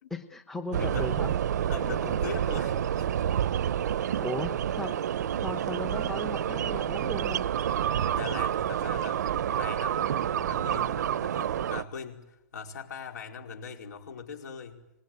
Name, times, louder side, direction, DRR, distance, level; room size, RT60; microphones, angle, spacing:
voice 1, 0.1-1.7 4.1-5.0 5.4-7.4, left 2 dB, 5° left, 8 dB, 1.0 m, -37 dB
sound 1, 0.7-11.8, right 10 dB, 65° right, 0.9 m, -29 dB
voice 2, 0.8-1.1 1.7-3.1 7.9-9.2 9.5-14.8, left 6 dB, 70° left, 3 dB, 4.9 m, -41 dB
26.0 x 20.0 x 9.4 m, 0.89 s
hypercardioid pair, 165°, 10 cm